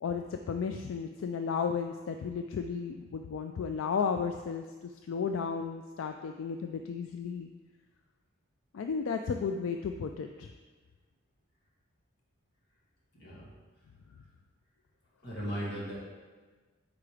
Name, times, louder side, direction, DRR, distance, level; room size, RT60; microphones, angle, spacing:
voice 1, 0.0-7.5 8.7-10.5, left 6 dB, 75° left, 5 dB, 0.3 m, -34 dB
voice 2, 15.2-16.0, equal, 50° left, -7 dB, 2.2 m, -37 dB
8.3 x 4.9 x 3.4 m, 1.4 s
head